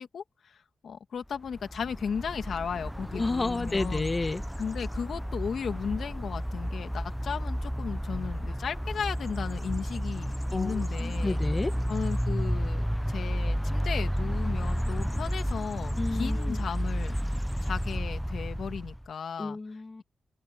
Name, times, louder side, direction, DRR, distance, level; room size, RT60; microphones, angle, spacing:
voice 1, 0.0-4.1 4.6-11.4 11.9-17.1 17.6-19.6, left 6 dB, 80° left, 1.7 m, -35 dB
sound 1, 1.5-19.1, equal, ahead, 0.6 m, -31 dB
voice 2, 3.1-4.4 10.5-11.8 16.0-16.6 19.4-20.0, left 3 dB, 35° left, 1.1 m, -31 dB
cardioid pair, 90°, 0 cm